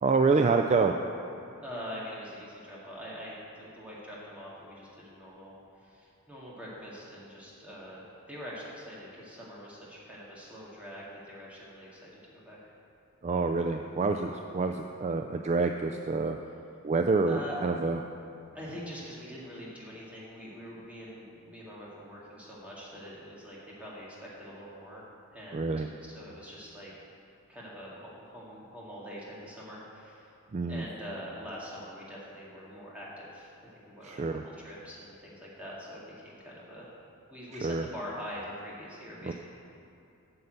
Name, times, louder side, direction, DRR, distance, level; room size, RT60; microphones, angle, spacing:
voice 1, 0.0-0.9 13.2-16.4 16.8-18.0 25.5-25.9 30.5-30.8 34.0-34.4 37.6-37.8 39.2-39.3, right 4 dB, 30° right, 5 dB, 0.3 m, -27 dB
voice 2, 1.6-12.7 17.3-17.6 18.5-26.9 27.5-30.3 30.7-36.9 37.3-39.3, equal, 5° right, -7 dB, 2.1 m, -44 dB
9.6 x 5.5 x 7.9 m, 2.7 s
head